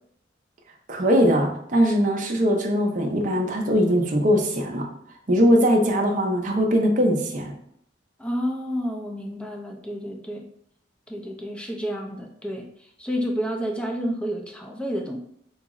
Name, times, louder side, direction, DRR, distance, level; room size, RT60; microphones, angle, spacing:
voice 1, 0.9-4.9 5.3-7.5, equal, 45° right, 2 dB, 0.6 m, -21 dB
voice 2, 8.2-10.4 11.1-12.7 13.0-15.2, equal, 5° left, 1 dB, 0.4 m, -30 dB
3.9 x 2.0 x 3.5 m, 0.70 s
head